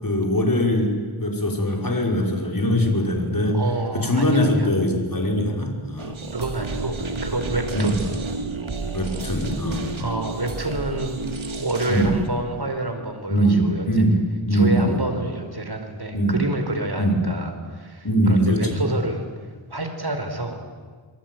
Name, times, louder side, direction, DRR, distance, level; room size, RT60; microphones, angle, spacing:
voice 1, 0.0-3.6 3.9-6.1 7.7-7.9 8.9-9.9 11.9-12.1 13.3-15.0 16.1-16.4 17.0-17.2 18.0-18.9, equal, 45° left, 2 dB, 5.7 m, -22 dB
voice 2, 3.5-4.7 6.3-8.1 10.0-11.2 11.6-13.9 14.5-19.3 19.7-20.6, right 2 dB, 50° right, 6 dB, 4.9 m, -28 dB
sound 1, 6.0-12.3, right 4 dB, 75° right, 2.7 m, -31 dB
26.5 x 23.5 x 9.5 m, 1.5 s
wide cardioid pair, 55°, 48 cm